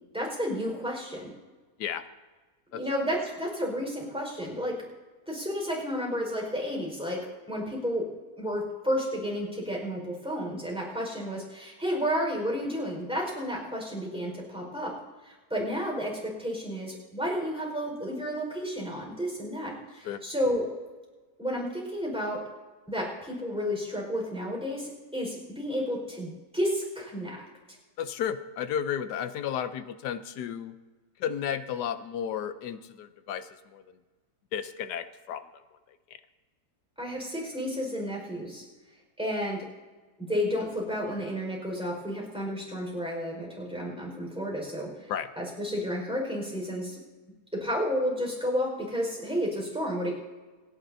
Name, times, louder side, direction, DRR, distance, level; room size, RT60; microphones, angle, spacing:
voice 1, 0.1-1.3 2.7-4.8 5.3-8.1 8.4-14.9 15.2-20.7 21.4-22.4 22.9-27.4 37.0-38.6 39.2-39.6 40.2-45.1 45.4-47.0 47.5-50.1, equal, 5° right, -2 dB, 4.7 m, -31 dB
voice 2, 28.0-30.7 31.2-33.8 34.5-35.4 45.1-45.3, left 9 dB, 85° left, 11 dB, 1.3 m, -33 dB
27.0 x 10.5 x 2.7 m, 1.3 s
omnidirectional pair, 1.7 m